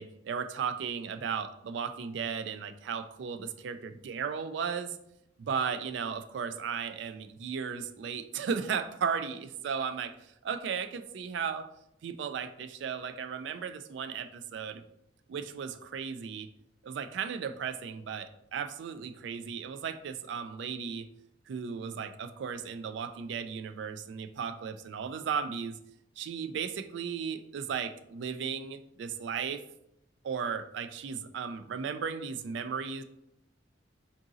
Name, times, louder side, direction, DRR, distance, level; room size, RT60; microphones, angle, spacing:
voice 1, 0.0-5.0 5.4-11.7 12.0-14.8 15.3-16.5 16.8-21.1 21.5-25.8 26.2-29.6 30.2-33.0, right 6 dB, 75° right, 10 dB, 0.3 m, -35 dB
3.8 x 2.6 x 3.7 m, 0.80 s
head